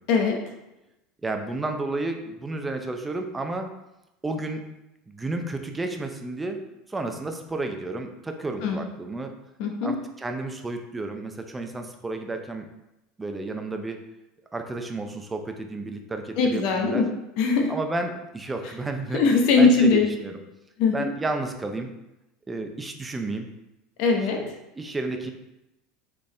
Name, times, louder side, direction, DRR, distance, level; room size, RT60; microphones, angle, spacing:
voice 1, 1.2-3.7 4.2-4.6 5.1-6.6 6.9-9.3 9.8-12.7 13.2-14.0 14.5-17.0 17.7-19.2 19.6-20.4 20.9-21.9 22.5-23.5 24.4-25.3, right 2 dB, 15° right, 5 dB, 0.6 m, -32 dB
voice 2, 9.6-10.0 16.4-17.1 17.4-17.7 19.1-20.1 20.8-21.1 24.0-24.4, left 4 dB, 65° left, 2 dB, 0.8 m, -20 dB
4.2 x 3.5 x 3.3 m, 0.91 s
supercardioid pair, 95°, 0 cm